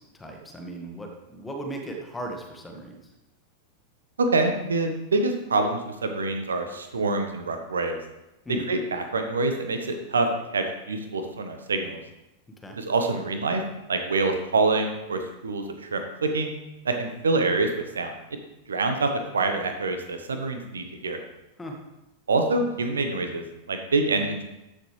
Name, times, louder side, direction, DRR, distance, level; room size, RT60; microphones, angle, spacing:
voice 1, 0.0-3.1 8.4-8.6 12.6-12.7 21.6-21.8, right 2 dB, 10° left, 3 dB, 1.6 m, -37 dB
voice 2, 4.2-8.0 8.7-12.0 12.8-13.6 13.9-16.5 16.8-17.7 17.9-18.1 18.7-21.2 22.3-24.4, right 3 dB, 70° right, 6 dB, 1.1 m, -26 dB
13.0 x 6.7 x 3.3 m, 0.95 s
figure-of-eight pair, 90°, 0 cm